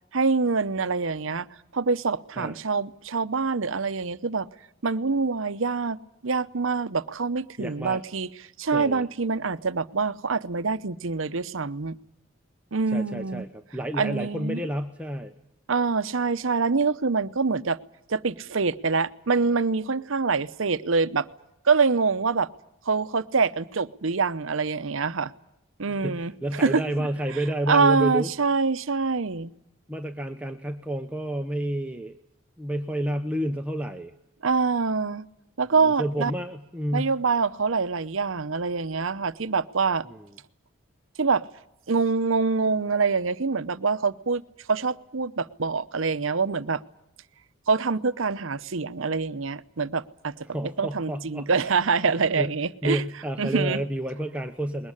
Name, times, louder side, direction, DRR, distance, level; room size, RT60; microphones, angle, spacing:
voice 1, 0.1-1.5 1.7-4.5 4.8-8.3 8.6-12.0 12.7-13.4 14.0-14.6 15.7-17.8 18.1-21.3 21.6-22.5 22.8-25.3 25.8-26.8 27.7-29.5 34.4-35.3 35.6-36.3 36.9-40.1 41.2-41.4 41.9-44.4 44.7-46.8 47.7-50.5 50.8-53.0 53.4-53.8, right 4 dB, 75° right, 13 dB, 0.8 m, -25 dB
voice 2, 7.6-8.0 8.7-9.1 12.9-15.3 25.9-28.3 29.9-32.2 32.6-34.1 35.7-37.2 40.1-40.2 50.5-51.7 52.1-52.5 52.8-54.9, right 1 dB, 5° right, 5 dB, 0.9 m, -30 dB
21.5 x 18.5 x 9.9 m, 0.82 s
head